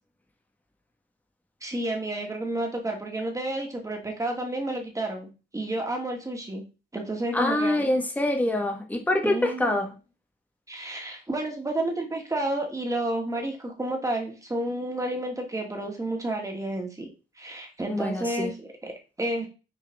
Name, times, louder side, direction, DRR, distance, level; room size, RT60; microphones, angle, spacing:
voice 1, 1.6-6.6 6.9-7.9 9.2-9.8 10.7-17.1 17.4-19.5, right 1 dB, 15° right, 1 dB, 2.3 m, -31 dB
voice 2, 7.3-9.9 17.9-18.5, left 1 dB, 10° left, 2 dB, 1.4 m, -25 dB
7.0 x 4.5 x 3.6 m, 0.31 s
cardioid pair, 90°, 20 cm